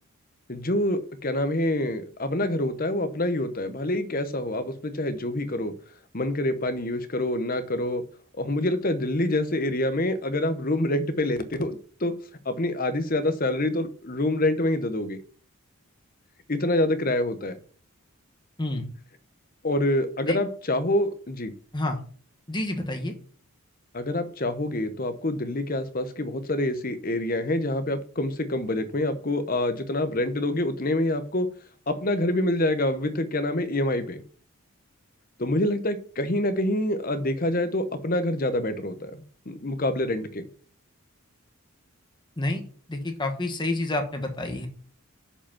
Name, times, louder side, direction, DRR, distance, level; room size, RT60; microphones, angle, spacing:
voice 1, 0.5-5.7 6.1-8.0 8.4-12.1 12.4-15.2 16.5-17.6 19.6-21.5 23.9-31.5 31.9-34.2 35.4-40.5, left 1 dB, 40° left, 10 dB, 1.0 m, -26 dB
voice 2, 22.5-23.1 42.4-42.6 42.9-44.7, left 2 dB, 20° left, 4 dB, 1.2 m, -28 dB
6.7 x 5.2 x 7.0 m, 0.44 s
head